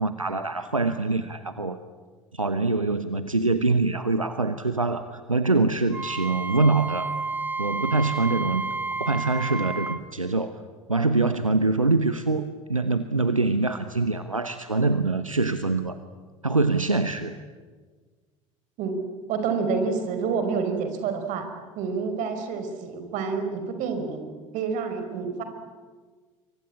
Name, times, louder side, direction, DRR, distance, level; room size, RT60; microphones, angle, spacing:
voice 1, 0.0-1.8 2.3-7.1 7.6-8.6 9.0-10.6 10.9-16.0 16.4-17.4, right 3 dB, 90° right, 11 dB, 1.0 m, -24 dB
Wind instrument woodwind instrument, 5.9-10.0, right 3 dB, 10° right, 1.5 m, -31 dB
voice 2, 19.3-21.5 21.7-24.3 24.5-25.4, right 5 dB, 50° right, 7 dB, 4.7 m, -28 dB
28.0 x 23.5 x 8.7 m, 1.5 s
figure-of-eight pair, 70°, 17 cm